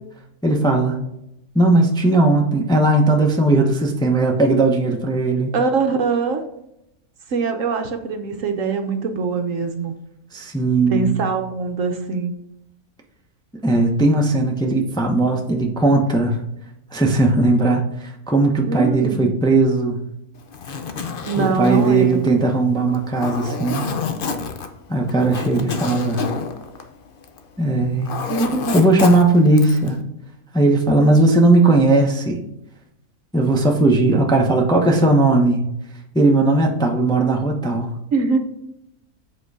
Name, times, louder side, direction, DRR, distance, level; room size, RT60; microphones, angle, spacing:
voice 1, 0.4-1.0 1.5-5.5 10.3-11.1 13.6-16.4 16.9-20.0 21.4-23.8 24.9-26.3 27.6-28.1 28.7-30.0 30.5-32.4 33.3-35.7 36.1-37.9, right 2 dB, 5° left, 1 dB, 0.7 m, -17 dB
voice 2, 5.5-6.4 7.3-9.9 10.9-12.3 18.7-19.3 21.3-22.4 28.3-28.9 38.1-38.4, right 4 dB, 60° right, 5 dB, 1.1 m, -22 dB
Zipper (clothing), 20.4-27.5 27.8-29.9, left 5 dB, 50° left, 0.7 m, -29 dB
7.7 x 4.5 x 4.8 m, 0.82 s
omnidirectional pair, 1.6 m